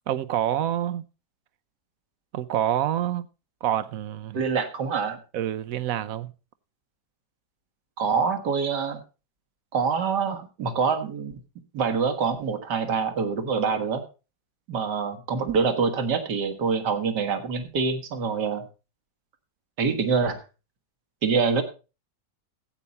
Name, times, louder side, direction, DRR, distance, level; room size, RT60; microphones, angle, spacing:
voice 1, 0.1-1.0 2.3-3.3 3.6-4.4 5.3-6.3, right 11 dB, 65° right, 1.0 m, -27 dB
voice 2, 4.3-5.2 8.0-9.0 9.7-11.4 11.7-14.0 14.7-18.6 19.8-20.4 21.2-21.6, right 5 dB, 80° right, 2.0 m, -25 dB
14.5 x 8.4 x 4.1 m
omnidirectional pair, 1.8 m